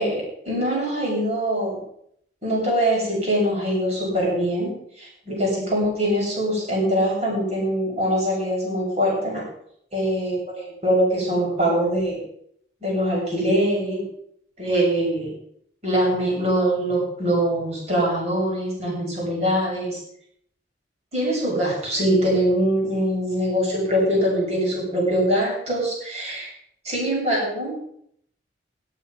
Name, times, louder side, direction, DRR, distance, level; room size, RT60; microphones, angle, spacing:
voice 1, 0.0-1.8 2.4-4.7 5.0-9.4 9.9-12.2 12.8-14.0 14.6-15.3 15.8-20.0 21.1-26.5 26.8-27.7, equal, 35° right, -3 dB, 7.2 m, -23 dB
18.0 x 8.3 x 5.7 m, 0.71 s
head